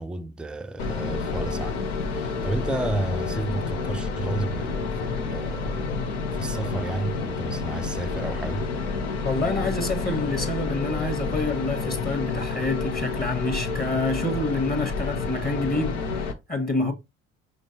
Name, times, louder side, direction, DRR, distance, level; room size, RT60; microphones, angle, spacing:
voice 1, 0.0-6.0 6.3-8.7, right 2 dB, 5° right, 0.4 m, -32 dB
sound 1, 0.8-16.3, left 4 dB, 85° left, 0.7 m, -29 dB
voice 2, 9.2-16.9, left 2 dB, 30° left, 1.2 m, -27 dB
5.1 x 3.2 x 2.9 m
hypercardioid pair, 55°, 33 cm